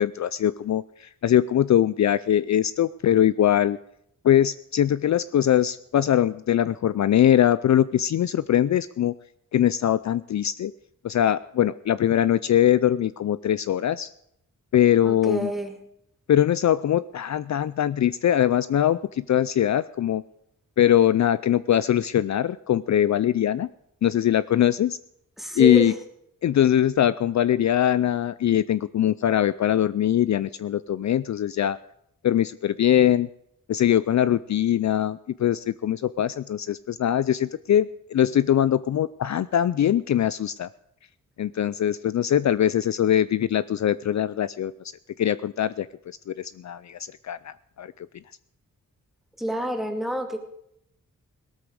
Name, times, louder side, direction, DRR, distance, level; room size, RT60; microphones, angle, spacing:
voice 1, 0.0-3.8 4.2-9.1 9.5-10.7 11.0-14.1 14.7-15.5 16.3-20.2 20.8-23.7 24.0-25.0 25.6-25.9 26.4-31.8 32.2-33.3 33.7-40.7 41.4-44.7 45.2-47.0 47.2-48.1, left 11 dB, 55° left, 16 dB, 0.5 m, -22 dB
voice 2, 15.0-15.8 25.4-26.0 49.4-50.4, equal, ahead, 3 dB, 2.4 m, -28 dB
18.0 x 13.0 x 4.8 m, 0.74 s
wide cardioid pair, 125°, 33 cm